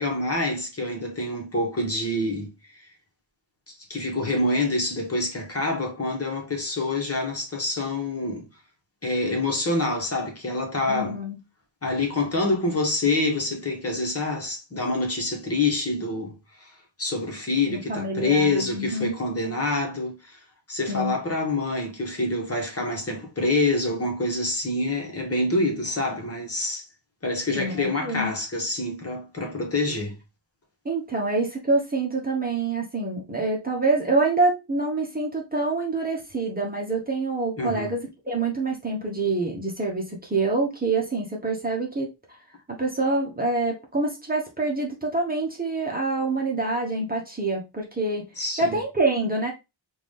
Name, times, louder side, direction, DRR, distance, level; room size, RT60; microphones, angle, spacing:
voice 1, 0.0-2.9 3.7-8.4 9.0-11.2 11.8-16.7 17.0-20.4 20.7-26.9 27.2-30.2 37.6-37.9 48.4-48.8, left 2 dB, 30° left, 1.4 m, -26 dB
voice 2, 10.9-11.4 17.6-19.2 20.9-21.1 27.5-28.3 30.8-42.1 42.8-48.2 48.6-49.5, right 3 dB, 20° right, 1.1 m, -26 dB
4.8 x 2.7 x 3.6 m
wide cardioid pair, 125°, 45 cm